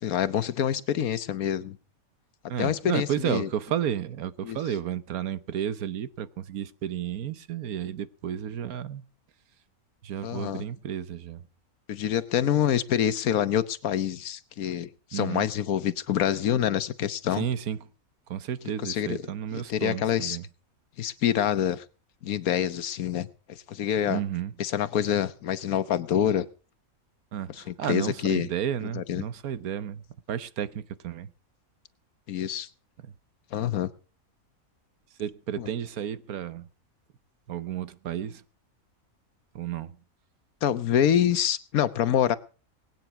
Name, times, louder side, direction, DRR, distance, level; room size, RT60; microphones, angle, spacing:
voice 1, 0.0-1.8 2.6-3.5 4.4-4.6 10.2-10.6 11.9-17.5 18.8-19.2 19.5-20.4 21.0-21.8 22.2-24.2 24.6-26.5 27.6-28.5 28.8-29.2 32.3-32.7 33.5-33.9 35.6-35.7 40.6-42.4, left 10 dB, 80° left, 1.4 m, -26 dB
voice 2, 2.5-9.0 10.0-11.4 15.1-15.5 17.3-17.8 18.3-20.4 24.1-24.5 27.3-31.3 33.0-33.1 33.5-33.7 35.2-36.7 37.5-38.4 39.5-40.0, right 10 dB, 85° right, 1.4 m, -32 dB
20.0 x 9.2 x 5.9 m
omnidirectional pair, 1.5 m